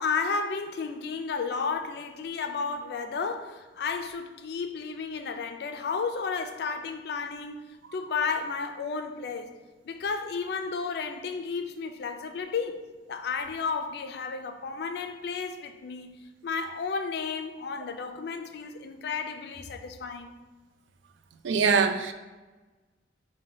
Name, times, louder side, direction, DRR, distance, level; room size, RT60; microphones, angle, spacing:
voice 1, 0.0-9.6 9.8-20.4, left 5 dB, 60° left, 0.4 m, -33 dB
voice 2, 21.4-22.1, right 5 dB, 90° right, 0.4 m, -23 dB
4.9 x 2.2 x 3.8 m
head